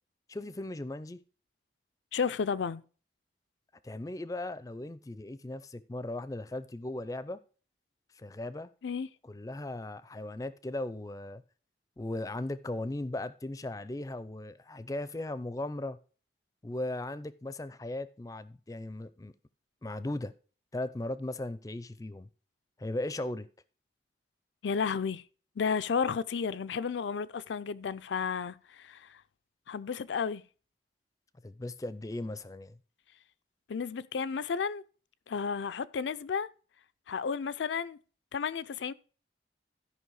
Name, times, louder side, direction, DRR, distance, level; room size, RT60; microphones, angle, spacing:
voice 1, 0.3-1.2 3.8-7.4 8.2-8.7 9.3-11.4 12.0-16.0 16.6-19.3 19.8-20.3 20.7-22.3 22.8-23.5 31.4-32.8, left 2 dB, 20° left, 0.4 m, -37 dB
voice 2, 2.1-2.8 8.8-9.1 24.6-25.2 25.6-29.2 29.7-30.4 33.7-34.8 35.3-36.5 37.1-38.0 38.3-38.9, left 6 dB, 90° left, 0.4 m, -32 dB
13.0 x 5.4 x 4.7 m
head